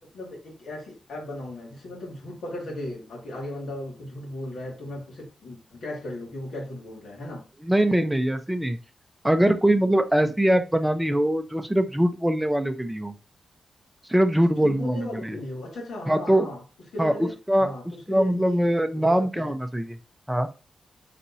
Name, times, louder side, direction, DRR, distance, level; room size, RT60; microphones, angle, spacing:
voice 1, 0.0-7.5 14.5-16.6 16.9-17.3 17.6-18.6 18.9-19.5, left 1 dB, 80° left, 2.3 m, -36 dB
voice 2, 7.6-8.8 9.2-13.1 14.1-15.4 16.1-16.5 17.0-17.7 18.1-20.0 20.3-20.5, right 1 dB, 10° right, 0.7 m, -22 dB
4.2 x 4.1 x 2.7 m
cardioid pair, 75°, 0 cm